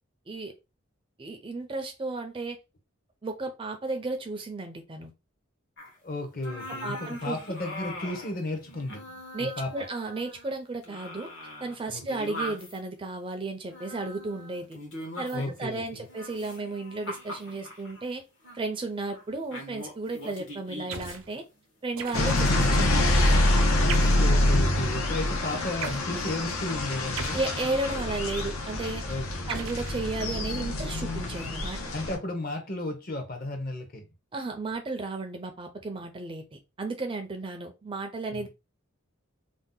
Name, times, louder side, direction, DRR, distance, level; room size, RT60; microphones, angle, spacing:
voice 1, 1.2-2.6 3.2-5.1 6.8-7.4 9.3-11.3 11.6-14.8 15.2-18.2 18.5-21.4 21.8-23.6 27.3-29.2 29.5-31.9 34.3-38.5, right 3 dB, 25° right, 0.4 m, -34 dB
sound 1, 5.8-6.0 6.3-8.3 8.7-10.6 10.8-12.8 13.7-15.7 16.1-18.0 18.4-18.6 19.1-19.2 19.5-21.2 21.9-23.3 24.2-24.5, left 1 dB, 60° left, 1.0 m, -42 dB
voice 2, 6.0-9.7 11.9-12.0 15.3-16.1 22.2-22.5 23.9-27.4 29.1-29.7 31.9-34.0 38.3-38.5, left 2 dB, 45° left, 0.7 m, -34 dB
sound 2, 20.9-21.3 22.0-22.6 23.9-24.4 25.8-26.1 27.2-28.0 29.5-30.6, right 6 dB, 80° right, 0.5 m, -38 dB
sound 3, 22.1-32.2, left 1 dB, 85° left, 0.7 m, -26 dB
2.7 x 2.1 x 3.7 m
head